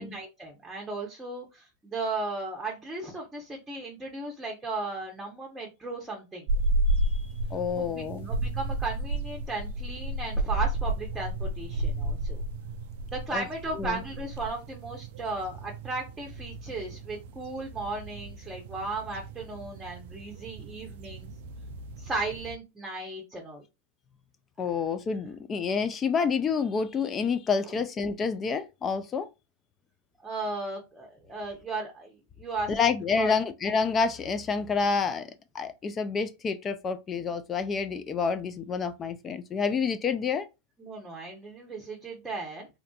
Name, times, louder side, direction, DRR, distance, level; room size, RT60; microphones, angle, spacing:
voice 1, 0.0-6.5 7.8-12.4 13.1-21.3 22.0-23.6 27.6-27.7 30.2-33.3 40.8-42.7, right 3 dB, 10° right, 0.8 m, -36 dB
sound 1, 6.5-22.6, right 1 dB, 60° right, 0.3 m, -33 dB
voice 2, 7.5-8.3 13.3-13.4 13.8-14.0 24.6-29.3 32.7-40.5, left 5 dB, 25° left, 0.3 m, -28 dB
2.5 x 2.5 x 2.3 m
hypercardioid pair, 105°, 0 cm